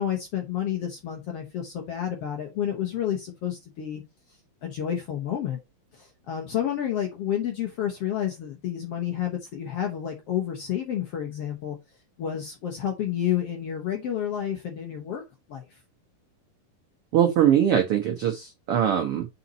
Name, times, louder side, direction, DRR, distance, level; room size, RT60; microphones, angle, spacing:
voice 1, 0.0-4.0 4.6-5.6 5.9-11.8 12.2-15.2 15.5-15.8, left 10 dB, 65° left, 1.6 m, -30 dB
voice 2, 17.1-19.3, right 10 dB, 80° right, 1.2 m, -22 dB
6.8 x 4.3 x 4.1 m
omnidirectional pair, 4.0 m